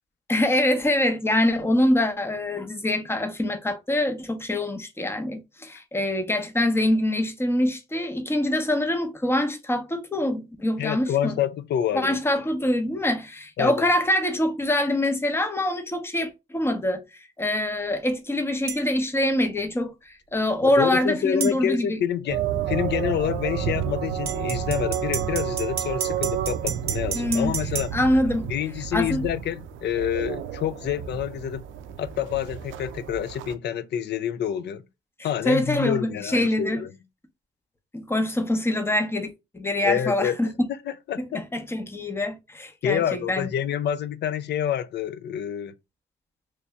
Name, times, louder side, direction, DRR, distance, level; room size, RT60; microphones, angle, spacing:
voice 1, 0.3-11.4 11.9-22.0 27.1-27.6 27.9-28.5 28.9-29.3 35.4-36.8 37.9-40.5 41.2-43.5, left 1 dB, 10° left, 0.7 m, -24 dB
voice 2, 10.8-12.2 13.6-13.9 20.6-27.9 28.5-31.6 32.0-34.8 35.2-36.9 39.8-40.4 40.9-41.4 42.8-45.7, left 9 dB, 60° left, 0.4 m, -27 dB
sound 1, 18.7-18.8 21.4-21.6 24.3-27.9, right 8 dB, 50° right, 0.8 m, -31 dB
sound 2, 22.3-33.5, right 9 dB, 75° right, 0.4 m, -31 dB
3.2 x 2.6 x 3.4 m
cardioid pair, 90°, 20 cm